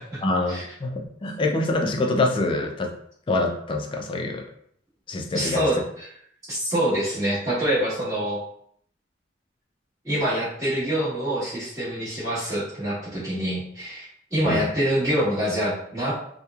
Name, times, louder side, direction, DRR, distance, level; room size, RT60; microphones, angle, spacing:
voice 1, 0.2-2.9 3.3-4.4 5.1-5.7 14.4-14.7, left 2 dB, 25° left, 2 dB, 0.3 m, -25 dB
voice 2, 5.3-6.1 6.5-8.4 10.0-16.1, equal, 20° right, -12 dB, 1.1 m, -26 dB
2.9 x 2.1 x 2.3 m, 0.67 s
head